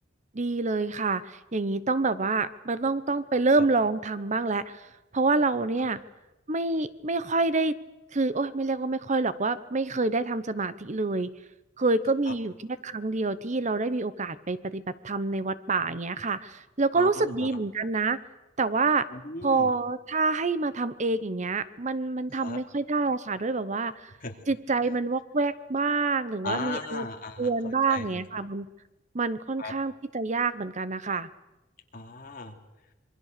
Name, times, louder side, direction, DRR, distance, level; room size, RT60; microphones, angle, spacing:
voice 1, 0.3-6.0 6.5-7.8 8.1-11.3 11.8-18.2 18.6-19.1 19.4-24.1 24.5-27.1 27.4-28.7 29.1-31.3, right 3 dB, 35° right, 14 dB, 0.8 m, -27 dB
voice 2, 17.0-17.5 19.1-19.7 22.4-22.6 24.2-24.3 26.4-28.4 29.6-29.7 31.9-32.5, left 3 dB, 45° left, 3 dB, 2.8 m, -37 dB
26.5 x 23.0 x 6.7 m, 1.0 s
head